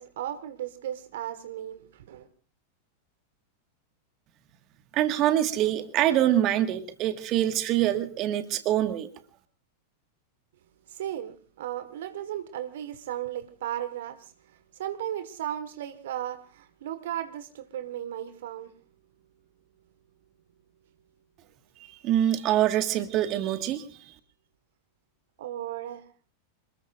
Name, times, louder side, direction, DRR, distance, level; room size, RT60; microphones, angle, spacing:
voice 1, 0.0-2.3 10.9-14.2 14.8-18.7 22.8-22.9 25.4-26.0, right 11 dB, 55° right, 10 dB, 1.6 m, -35 dB
voice 2, 4.9-9.1 22.0-23.8, right 12 dB, 35° right, 8 dB, 1.7 m, -25 dB
27.0 x 20.5 x 2.5 m, 0.37 s
figure-of-eight pair, 90°, 0 cm